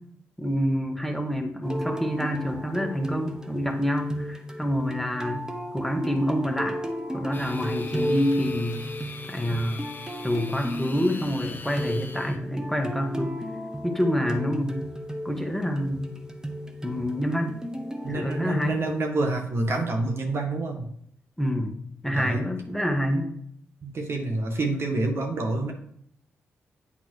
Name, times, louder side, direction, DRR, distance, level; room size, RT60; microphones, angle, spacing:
voice 1, 0.4-5.5 5.7-6.8 7.1-8.8 9.3-9.9 10.2-13.3 13.8-14.8 15.2-16.1 16.8-17.6 18.1-18.8 21.4-21.7 22.0-23.3, equal, 5° left, 3 dB, 1.6 m, -27 dB
sound 1, 1.6-19.1, equal, 15° right, 1.2 m, -34 dB
sound 2, 7.3-12.4, left 3 dB, 40° left, 0.9 m, -42 dB
voice 2, 18.0-20.9 22.2-22.4 23.8-25.7, right 2 dB, 55° right, 3 dB, 1.6 m, -27 dB
8.6 x 4.0 x 4.7 m, 0.66 s
supercardioid pair, 50°, 5 cm